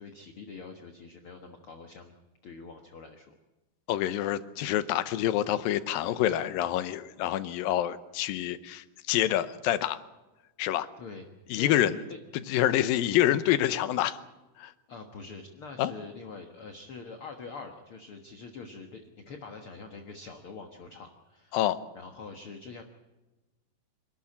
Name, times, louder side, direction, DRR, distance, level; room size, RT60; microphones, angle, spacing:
voice 1, 0.0-2.1 2.4-3.3 11.0-11.3 11.5-12.2 12.8-12.9 14.9-21.6 22.0-22.8, left 4 dB, 50° left, 4 dB, 1.8 m, -44 dB
voice 2, 3.9-10.0 10.6-10.9 11.5-12.0 12.5-14.2 14.6-14.7 15.8-15.9 21.5-21.8, left 12 dB, 90° left, 13 dB, 2.6 m, -27 dB
26.0 x 13.0 x 8.6 m, 1.1 s
omnidirectional pair, 4.0 m